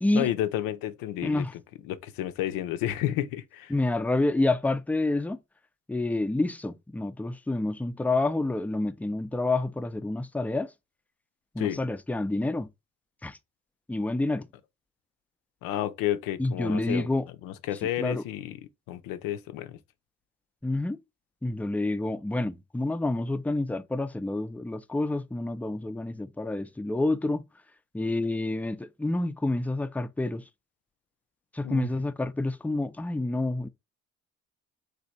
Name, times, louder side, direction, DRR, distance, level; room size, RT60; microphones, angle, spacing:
voice 1, 0.1-1.4 1.9-3.7 11.6-11.8 15.6-17.1 17.4-18.6 18.9-19.8 31.6-31.9, left 12 dB, 90° left, 0.5 m, -31 dB
voice 2, 1.2-1.5 3.7-5.4 5.9-10.7 11.5-12.7 13.2-13.4 13.9-14.5 16.4-17.3 18.0-18.2 20.6-21.0 21.4-27.4 27.9-30.4 31.5-33.7, left 2 dB, 5° left, 0.3 m, -28 dB
3.2 x 2.7 x 4.0 m
supercardioid pair, 60°, 33 cm